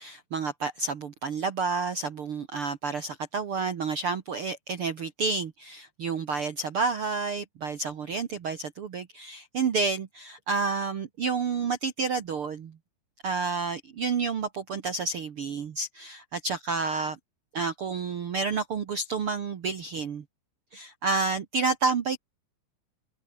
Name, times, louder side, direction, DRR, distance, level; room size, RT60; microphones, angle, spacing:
voice 1, 0.0-12.7 13.2-17.2 17.5-20.2 20.7-22.2, right 4 dB, 50° right, 1.8 m, -30 dB
open air
omnidirectional pair, 4.1 m